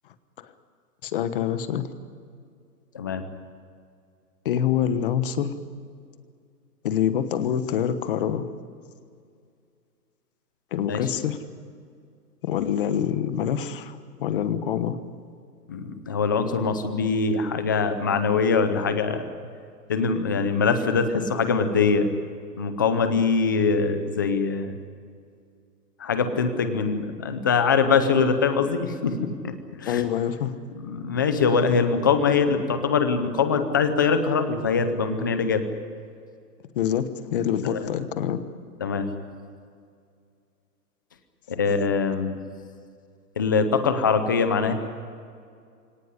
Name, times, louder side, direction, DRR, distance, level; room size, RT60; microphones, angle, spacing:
voice 1, 1.0-1.9 4.4-5.5 6.8-8.5 10.7-11.4 12.4-15.0 29.8-30.6 36.7-38.4, left 9 dB, 35° left, 11 dB, 1.3 m, -26 dB
voice 2, 15.7-19.2 19.9-22.1 22.6-24.7 26.0-30.0 30.8-35.6 37.6-37.9 38.8-39.1 41.5-42.4 43.4-44.7, left 5 dB, 15° left, 9 dB, 0.6 m, -23 dB
24.0 x 18.5 x 9.9 m, 2.3 s
hypercardioid pair, 165°, 49 cm